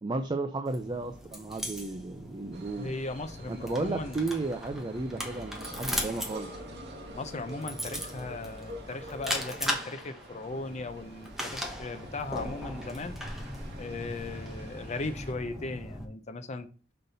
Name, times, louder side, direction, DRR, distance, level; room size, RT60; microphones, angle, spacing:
voice 1, 0.0-2.9 3.5-6.5, right 3 dB, 20° right, 0.4 m, -33 dB
sound 1, 0.7-16.0, equal, ahead, 1.0 m, -39 dB
sound 2, 2.5-15.3, right 1 dB, 55° right, 1.7 m, -48 dB
voice 2, 2.8-4.2 7.2-13.2 13.8-16.7, left 3 dB, 35° left, 0.5 m, -37 dB
5.7 x 5.3 x 4.0 m
head